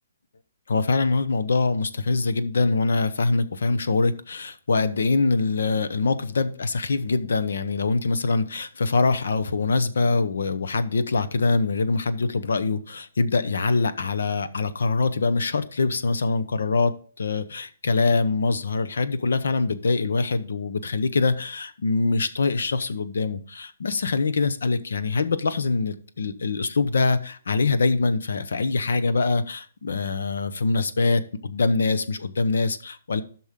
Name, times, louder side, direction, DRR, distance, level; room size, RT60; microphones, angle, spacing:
voice 1, 0.7-33.2, left 3 dB, 90° left, 12 dB, 0.9 m, -24 dB
12.0 x 6.1 x 3.7 m, 0.43 s
hypercardioid pair, 180°, 0 cm